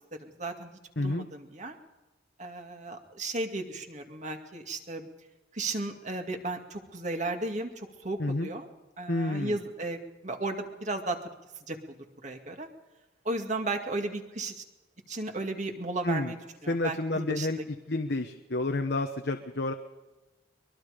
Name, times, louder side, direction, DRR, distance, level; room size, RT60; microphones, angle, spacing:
voice 1, 0.2-1.7 2.4-5.1 5.5-8.7 9.0-11.2 11.7-11.8 12.2-12.7 13.2-14.6 15.1-17.6, right 2 dB, 40° right, 4 dB, 2.3 m, -35 dB
voice 2, 1.0-1.3 8.2-8.5 9.1-9.6 16.0-16.3 16.7-17.6 17.9-19.7, left 2 dB, 65° left, 5 dB, 1.1 m, -30 dB
23.0 x 22.0 x 5.2 m, 1.1 s
head